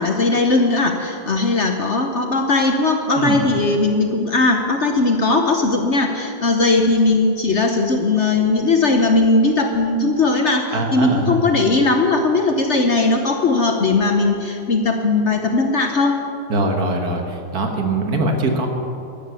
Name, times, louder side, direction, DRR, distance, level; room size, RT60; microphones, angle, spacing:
voice 1, 0.0-16.2, left 3 dB, 50° left, 4 dB, 1.0 m, -18 dB
voice 2, 10.7-11.4 16.5-18.7, right 2 dB, 60° right, 3 dB, 1.9 m, -22 dB
12.5 x 12.5 x 7.0 m, 2.7 s
omnidirectional pair, 1.9 m